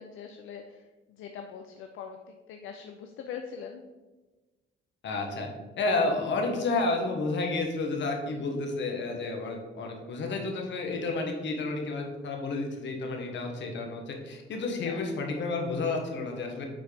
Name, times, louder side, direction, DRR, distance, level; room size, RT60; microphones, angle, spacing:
voice 1, 0.0-3.8 8.3-8.5 14.8-15.1, left 7 dB, 85° left, 5 dB, 0.6 m, -43 dB
voice 2, 5.0-5.5 5.8-16.7, left 3 dB, 65° left, 2 dB, 1.5 m, -31 dB
8.9 x 4.2 x 3.5 m, 1.2 s
cardioid pair, 90°, 20 cm